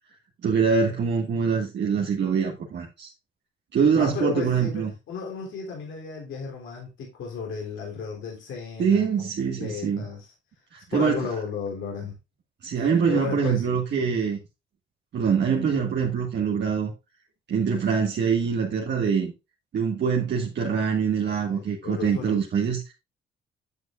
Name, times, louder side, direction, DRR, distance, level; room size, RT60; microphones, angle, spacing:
voice 1, 0.4-3.1 3.7-4.9 8.8-10.0 10.7-11.2 12.6-14.4 15.1-16.9 17.5-19.3 19.7-22.9, right 6 dB, 60° right, 1.9 m, -24 dB
voice 2, 3.9-9.3 9.6-10.3 10.9-12.1 12.8-13.8 21.5-22.4, left 5 dB, 75° left, 3.5 m, -34 dB
9.4 x 7.9 x 2.5 m
cardioid pair, 90°, 20 cm